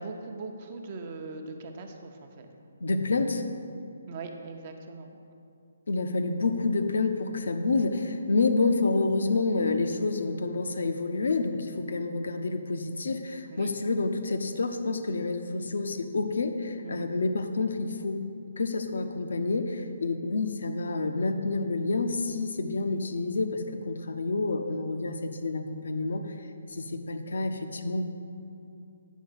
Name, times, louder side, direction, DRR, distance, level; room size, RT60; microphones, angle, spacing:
voice 1, 0.0-2.5 4.1-5.2 13.5-13.7 16.8-17.1, right 3 dB, 35° right, 4 dB, 0.7 m, -40 dB
voice 2, 2.8-3.4 5.9-18.2 18.6-26.2 26.7-28.0, left 3 dB, 60° left, 7 dB, 0.6 m, -28 dB
8.2 x 4.7 x 6.3 m, 2.6 s
figure-of-eight pair, 135°, 0 cm